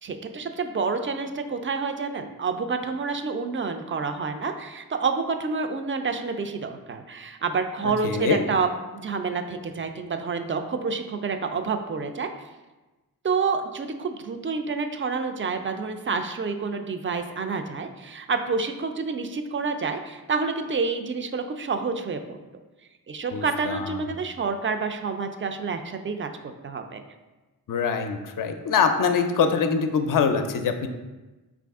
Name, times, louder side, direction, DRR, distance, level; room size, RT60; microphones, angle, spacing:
voice 1, 0.0-12.3 13.2-22.4 23.1-26.3 26.6-27.0, right 4 dB, 35° right, 6 dB, 0.4 m, -28 dB
voice 2, 8.0-8.4 23.3-23.9 27.7-30.9, left 6 dB, 55° left, 7 dB, 0.5 m, -24 dB
4.6 x 2.5 x 3.5 m, 1.1 s
cardioid pair, 50°, 38 cm